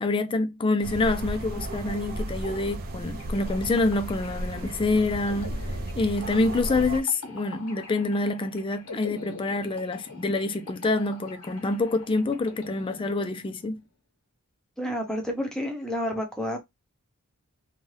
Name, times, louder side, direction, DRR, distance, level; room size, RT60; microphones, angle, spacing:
voice 1, 0.0-5.6 6.0-13.8, left 2 dB, 25° left, 0.3 m, -26 dB
sound 1, 0.8-7.0, right 1 dB, 40° right, 0.5 m, -34 dB
sound 2, 3.2-13.6, left 3 dB, 90° left, 0.9 m, -45 dB
voice 2, 14.8-16.6, equal, 5° left, 0.8 m, -30 dB
2.6 x 2.3 x 3.2 m
head